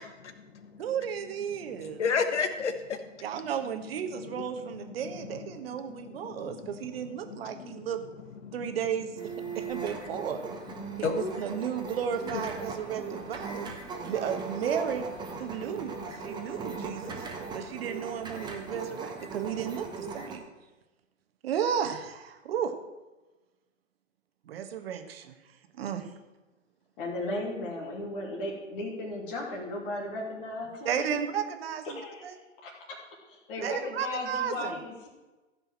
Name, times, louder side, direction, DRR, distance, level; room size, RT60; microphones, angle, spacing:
voice 1, 0.8-2.0 3.2-8.0 8.5-10.4 11.0-13.7 14.0-15.1 15.4-17.2 17.5-20.4 21.4-22.7 24.5-25.4 25.7-26.1 30.8-32.4 33.6-34.7, right 8 dB, 50° right, 7 dB, 1.5 m, -34 dB
voice 2, 2.0-3.1 4.2-4.4 4.9-5.2 5.5-7.9 8.4-8.8 9.5-9.6 10.8-11.4 12.3-12.4 14.0-14.1 15.6-15.7, left 5 dB, 65° left, 9 dB, 1.6 m, -33 dB
sound 1, 9.2-20.4, right 4 dB, 10° right, 1.4 m, -38 dB
voice 3, 27.0-31.2 31.8-32.4 32.6-33.0 33.3-35.1, left 2 dB, 45° left, -1 dB, 3.0 m, -36 dB
15.0 x 5.5 x 7.4 m, 1.1 s
figure-of-eight pair, 125°, 38 cm